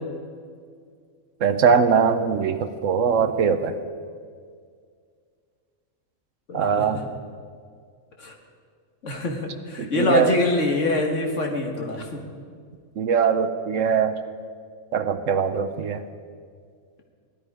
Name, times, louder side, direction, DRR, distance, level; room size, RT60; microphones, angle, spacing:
voice 1, 1.4-3.7 6.5-7.0 9.8-10.3 13.0-14.1 14.9-16.0, right 6 dB, 70° right, 10 dB, 1.0 m, -21 dB
voice 2, 6.5-7.0 8.2-8.4 9.0-12.2, left 2 dB, 60° left, 1 dB, 2.0 m, -25 dB
17.0 x 12.5 x 4.9 m, 2.1 s
omnidirectional pair, 1.5 m